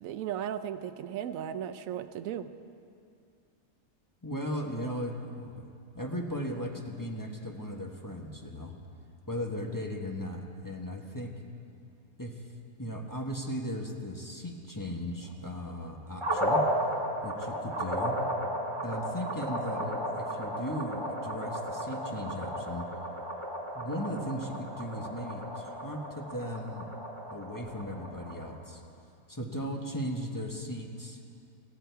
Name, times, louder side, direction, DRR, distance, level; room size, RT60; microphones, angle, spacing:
voice 1, 0.0-2.5, right 10 dB, 75° right, 11 dB, 1.1 m, -36 dB
voice 2, 4.2-5.6 5.9-8.7 9.3-11.3 12.2-12.4 12.8-16.6 17.2-18.2 18.8-22.9 23.7-26.9 27.3-28.8 29.3-31.2, equal, 15° left, 1 dB, 1.2 m, -37 dB
sound 1, 16.2-28.5, equal, 20° right, 1.8 m, -34 dB
19.0 x 15.5 x 4.7 m, 2.5 s
omnidirectional pair, 1.5 m